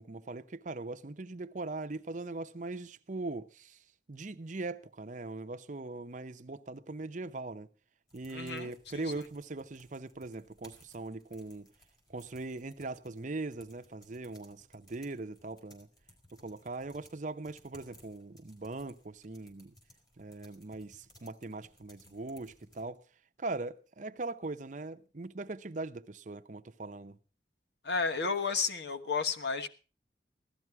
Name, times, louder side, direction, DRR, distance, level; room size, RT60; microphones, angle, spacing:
voice 1, 0.0-3.8 4.1-7.7 8.1-11.7 12.1-15.9 16.3-19.7 20.2-23.0 23.4-27.2, right 2 dB, 45° right, 0.7 m, -40 dB
sound 1, 8.1-22.8, equal, 20° left, 4.2 m, -62 dB
voice 2, 8.3-9.1 27.8-29.7, left 4 dB, 70° left, 1.2 m, -32 dB
16.0 x 12.5 x 4.6 m
head